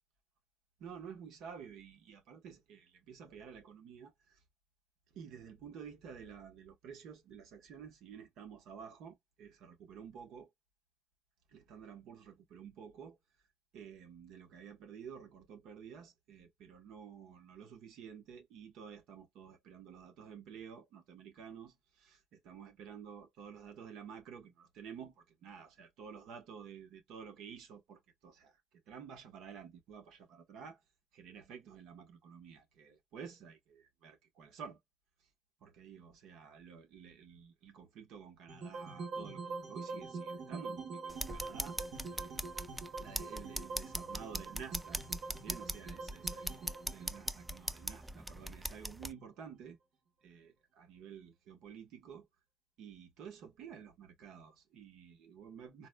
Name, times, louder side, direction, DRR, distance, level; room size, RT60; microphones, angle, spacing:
voice 1, 0.8-4.4 5.1-10.5 11.5-13.2 13.7-28.6 28.9-30.8 31.1-34.8 35.6-42.3 43.0-45.0 45.4-49.8 50.2-52.3 52.8-55.9, right 7 dB, 90° right, 1.0 m, -51 dB
sound 1, 38.5-48.7, right 4 dB, 70° right, 1.5 m, -45 dB
sound 2, 41.1-49.1, right 1 dB, 10° right, 0.3 m, -41 dB
4.0 x 2.1 x 2.2 m
cardioid pair, 90°, 0 cm